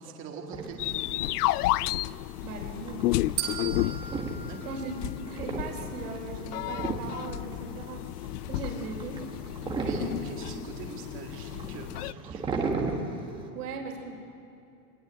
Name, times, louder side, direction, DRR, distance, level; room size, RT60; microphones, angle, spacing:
voice 1, 0.0-1.4 4.5-4.8 9.8-12.7, right 5 dB, 25° right, 1 dB, 2.0 m, -44 dB
sound 1, 0.5-13.5, right 3 dB, 10° right, 1.2 m, -37 dB
sound 2, 0.8-12.1, left 17 dB, 80° left, 0.5 m, -32 dB
voice 2, 2.4-3.2 4.6-8.0 8.5-9.2 13.5-14.2, right 4 dB, 80° right, 2 dB, 4.1 m, -38 dB
sound 3, 3.4-5.6, right 10 dB, 50° right, 2.9 m, -37 dB
23.0 x 19.5 x 7.8 m, 2.6 s
supercardioid pair, 170°, 45 cm